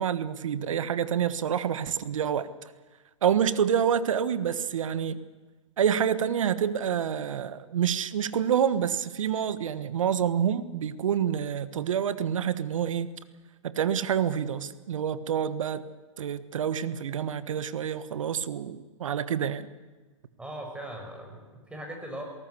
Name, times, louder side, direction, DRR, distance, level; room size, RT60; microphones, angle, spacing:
voice 1, 0.0-2.5 3.2-5.2 5.8-13.1 13.6-15.8 16.2-19.7, right 8 dB, 75° right, 14 dB, 1.4 m, -27 dB
voice 2, 20.4-22.2, right 1 dB, 5° right, 2 dB, 5.9 m, -39 dB
21.0 x 18.0 x 8.2 m, 1.3 s
hypercardioid pair, 125°, 17 cm